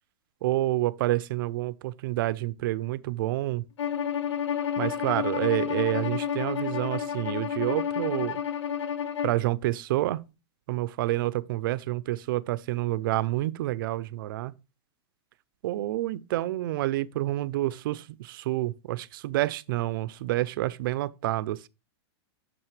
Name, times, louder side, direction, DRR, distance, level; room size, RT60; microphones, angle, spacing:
voice 1, 0.4-3.6 4.8-8.4 9.2-10.2 10.7-14.5 15.6-18.0 18.3-21.7, right 16 dB, 50° right, 0.5 m, -28 dB
Bowed string instrument, 3.8-9.4, left 8 dB, 90° left, 0.9 m, -30 dB
8.9 x 6.4 x 3.2 m
supercardioid pair, 165°, 14 cm